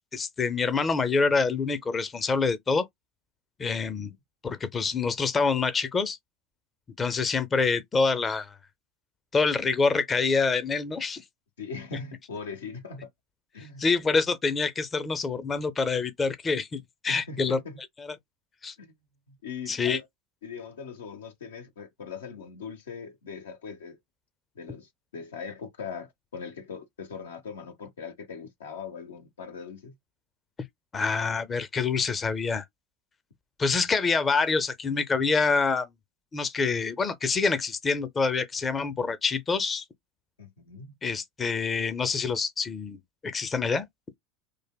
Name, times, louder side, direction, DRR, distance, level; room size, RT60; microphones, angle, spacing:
voice 1, 0.1-2.9 3.6-4.1 4.4-6.2 7.0-8.5 9.3-11.2 13.8-17.6 18.6-18.7 19.7-20.0 30.9-32.6 33.6-35.9 36.3-39.8 41.0-43.0 43.2-43.8, left 4 dB, 25° left, 0.5 m, -26 dB
voice 2, 3.8-4.2 11.6-13.1 13.5-13.8 17.1-17.8 18.8-18.9 19.3-20.1 20.4-24.0 24.6-30.0 40.4-40.9, left 5 dB, 80° left, 0.6 m, -40 dB
3.3 x 2.2 x 2.2 m
hypercardioid pair, 80°, 0 cm